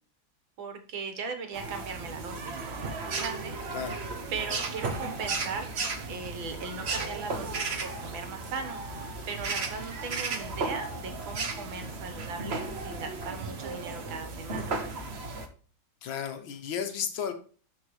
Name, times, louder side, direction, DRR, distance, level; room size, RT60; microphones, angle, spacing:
voice 1, 0.6-3.6 4.3-5.7 6.1-14.8, right 5 dB, 75° right, 2.1 m, -38 dB
sound 1, 1.5-15.5, right 3 dB, 45° right, 1.0 m, -35 dB
voice 2, 3.7-4.1 16.0-17.3, left 7 dB, 75° left, 1.7 m, -33 dB
12.5 x 4.6 x 3.2 m
omnidirectional pair, 2.2 m